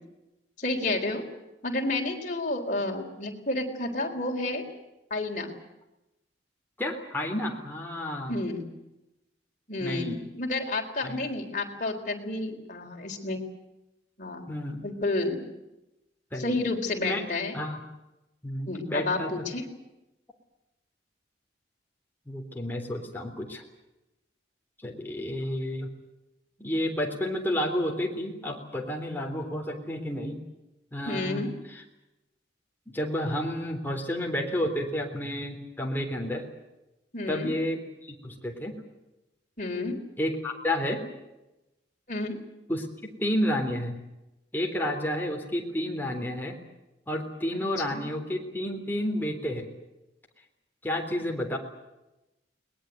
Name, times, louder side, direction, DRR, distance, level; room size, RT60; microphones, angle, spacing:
voice 1, 0.6-1.2 1.6-4.6 5.1-5.5 8.3-8.7 9.7-13.4 14.2-14.5 14.8-15.5 16.4-17.6 18.7-19.6 31.1-31.5 37.1-37.5 39.6-40.0 42.1-42.4 47.9-48.1, left 2 dB, 45° left, 2 dB, 4.0 m, -30 dB
voice 2, 6.8-8.3 9.8-10.2 11.0-11.2 14.5-14.8 16.3-16.6 17.0-17.2 17.5-17.8 18.4-19.3 22.3-23.6 24.8-25.9 26.6-30.4 30.9-31.4 31.7-31.8 32.9-36.4 37.3-38.7 40.2-41.0 42.7-42.9 43.2-44.0 44.5-46.6 47.1-49.7 50.8-51.6, left 1 dB, 10° left, 1 dB, 3.7 m, -30 dB
22.0 x 20.5 x 9.2 m, 0.95 s
head